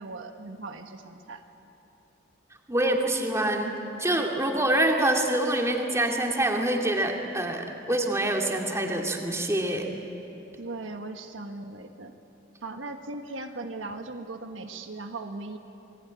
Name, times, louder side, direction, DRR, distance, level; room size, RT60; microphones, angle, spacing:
voice 1, 0.0-1.4 10.6-12.1 12.6-15.6, right 2 dB, 80° right, 5 dB, 1.5 m, -38 dB
voice 2, 2.7-3.7 4.0-9.9, right 1 dB, 15° right, 2 dB, 2.2 m, -26 dB
27.5 x 20.0 x 9.7 m, 2.9 s
head